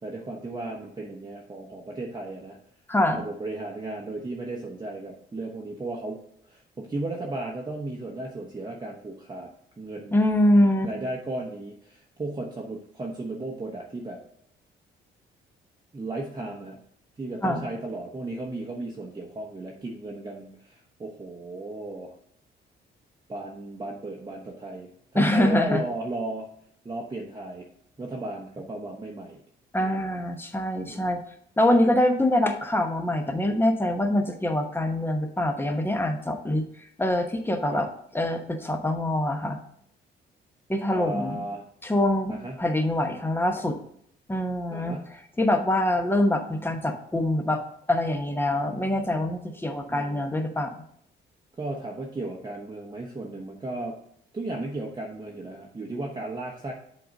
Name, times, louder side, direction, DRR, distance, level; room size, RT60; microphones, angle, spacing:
voice 1, 0.0-2.6 3.1-6.2 6.5-9.5 9.8-10.2 10.8-14.2 15.9-16.8 17.2-22.1 23.3-26.5 26.8-27.7 28.0-29.4 29.8-30.2 30.9-31.2 37.7-37.8 40.9-41.6 42.3-42.6 44.7-45.1 49.9-50.2 51.6-54.0 54.3-56.7, right 2 dB, 20° right, -1 dB, 1.0 m, -35 dB
voice 2, 2.9-3.2 10.1-10.9 17.4-17.6 25.1-25.8 29.7-31.2 31.6-36.6 37.0-37.9 38.1-39.6 40.7-41.4 41.8-43.8 44.3-45.0 45.4-47.6 47.9-50.7, left 1 dB, 10° left, 5 dB, 1.0 m, -24 dB
7.6 x 3.9 x 5.3 m, 0.69 s
cardioid pair, 90°, 20 cm